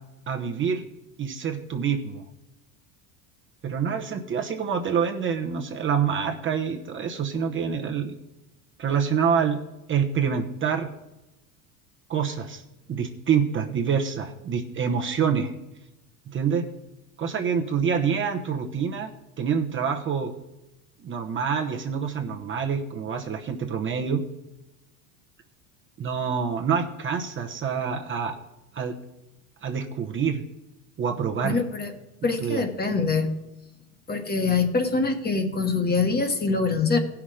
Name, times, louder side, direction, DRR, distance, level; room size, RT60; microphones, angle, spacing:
voice 1, 0.3-0.9 1.2-2.2 3.6-8.1 8.8-9.6 9.9-10.9 12.1-12.6 12.9-15.6 16.3-16.7 17.2-19.1 19.4-20.3 21.0-24.2 26.0-28.4 28.7-29.0 29.6-30.4 31.0-31.6 32.4-32.6, right 7 dB, 30° right, 3 dB, 1.0 m, -26 dB
voice 2, 31.4-31.9 32.2-33.3 34.1-37.0, left 4 dB, 25° left, 7 dB, 1.3 m, -24 dB
15.5 x 6.0 x 4.9 m, 0.99 s
supercardioid pair, 110°, 41 cm